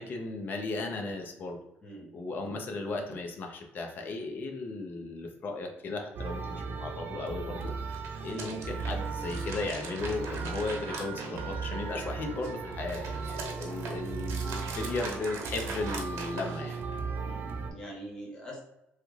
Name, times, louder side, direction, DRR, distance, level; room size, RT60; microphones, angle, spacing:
voice 1, 0.0-1.6 2.1-16.8, left 3 dB, 45° left, 2 dB, 0.6 m, -36 dB
sound 1, 6.2-17.7, right 5 dB, 50° right, 0.5 m, -37 dB
sound 2, 7.8-11.9 12.3-16.9, right 4 dB, 75° right, 0.8 m, -42 dB
Bowed string instrument, 8.6-13.1, right 2 dB, 15° right, 1.0 m, -48 dB
voice 2, 17.2-18.6, equal, 20° left, -3 dB, 1.1 m, -44 dB
3.2 x 2.4 x 3.1 m, 0.82 s
cardioid pair, 135°, 5 cm